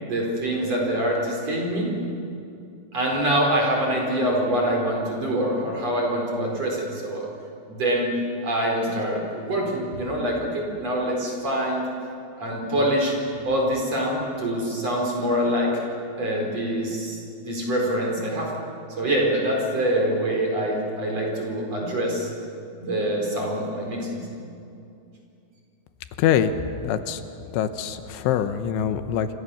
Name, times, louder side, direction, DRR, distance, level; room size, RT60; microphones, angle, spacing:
voice 1, 0.0-1.9 2.9-7.3 7.7-8.1 8.4-11.9 12.4-13.2 13.4-15.7 16.1-18.5 19.0-22.3 22.8-24.2, right 1 dB, 35° right, -1 dB, 5.3 m, -25 dB
voice 2, 26.2-26.5 26.8-27.2 27.5-29.3, left 9 dB, 85° left, 10 dB, 3.5 m, -24 dB
28.0 x 27.0 x 7.1 m, 2.6 s
omnidirectional pair, 5.3 m